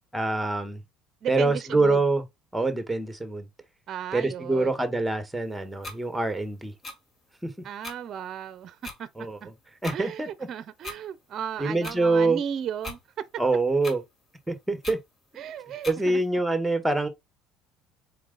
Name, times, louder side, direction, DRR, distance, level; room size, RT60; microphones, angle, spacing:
voice 1, 0.1-0.8 1.3-2.2 2.5-3.5 4.1-6.7 7.4-7.5 9.2-9.4 9.8-10.3 11.6-12.4 13.4-14.0 14.5-15.0 15.9-17.1, right 2 dB, 5° right, 1.3 m, -25 dB
voice 2, 1.2-2.0 3.9-4.8 7.6-9.1 9.4-9.5 9.9-13.0 15.4-16.2, right 9 dB, 50° right, 0.6 m, -35 dB
sound 1, 5.8-6.0 6.8-7.0 7.8-8.0 8.8-9.0 9.8-10.0 10.8-11.0 11.8-12.0 12.8-13.0 13.8-14.0 14.8-15.0 15.8-16.0, left 2 dB, 35° left, 1.9 m, -38 dB
4.4 x 2.8 x 3.9 m
supercardioid pair, 90°, 0 cm